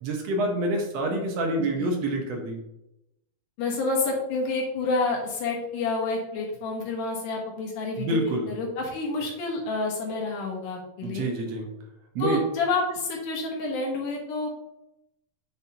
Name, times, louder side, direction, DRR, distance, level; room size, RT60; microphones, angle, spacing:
voice 1, 0.0-2.6 8.0-8.5 11.0-11.7 12.2-12.4, right 1 dB, 65° right, 2 dB, 1.8 m, -27 dB
voice 2, 3.6-8.2 8.5-11.3 12.2-14.6, left 3 dB, 70° left, -1 dB, 2.7 m, -29 dB
8.9 x 5.3 x 2.8 m, 0.86 s
omnidirectional pair, 3.9 m